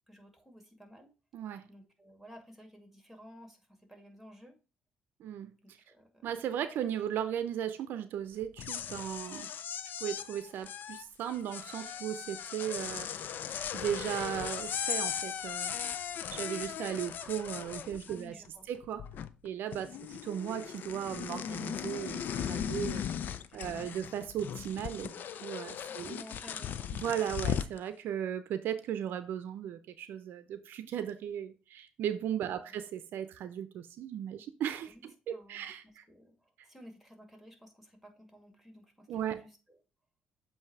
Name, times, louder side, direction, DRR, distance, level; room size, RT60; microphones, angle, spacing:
voice 1, 0.1-1.1 1.7-4.6 5.6-6.2 18.1-18.7 19.7-20.0 23.5-23.8 25.9-26.9 32.4-32.7 34.9-35.0 35.3-39.8, equal, ahead, 2.1 m, -54 dB
voice 2, 1.3-1.6 5.2-5.5 6.2-9.5 10.0-13.1 13.7-15.7 16.3-18.3 18.7-19.0 19.4-19.9 20.2-23.1 23.5-26.2 27.0-34.9 35.3-36.0 39.1-39.4, right 9 dB, 70° right, 0.5 m, -36 dB
sound 1, 8.4-18.5 18.7-19.5 19.7-27.8, left 9 dB, 60° left, 0.5 m, -38 dB
7.7 x 2.7 x 4.6 m
cardioid pair, 80°, 4 cm